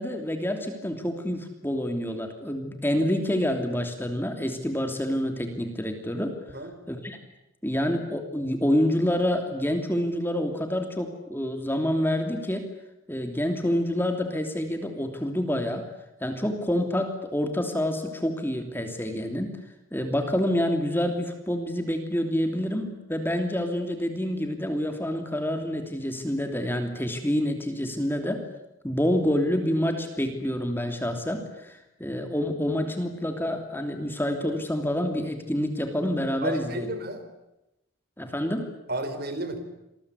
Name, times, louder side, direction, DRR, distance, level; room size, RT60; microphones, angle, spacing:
voice 1, 0.0-6.4 6.9-7.2 7.6-12.7 13.1-15.8 16.2-19.5 19.9-28.4 28.8-36.9 38.2-38.7, equal, 10° left, 5 dB, 2.9 m, -27 dB
voice 2, 36.4-37.2 38.9-39.6, right 1 dB, 45° right, 9 dB, 4.3 m, -31 dB
27.5 x 21.5 x 9.8 m, 0.91 s
head